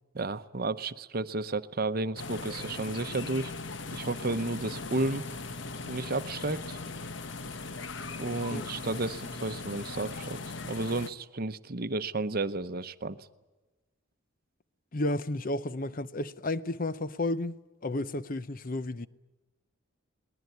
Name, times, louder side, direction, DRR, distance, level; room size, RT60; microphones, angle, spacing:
voice 1, 0.1-3.5 3.9-5.3 5.9-6.8 8.2-10.4 10.6-13.3, right 2 dB, 45° right, 0.8 m, -32 dB
sound 1, 2.1-11.1, left 3 dB, 60° left, 1.1 m, -39 dB
voice 2, 14.9-17.6 17.8-19.1, left 2 dB, 40° left, 0.8 m, -32 dB
22.5 x 20.0 x 9.4 m
head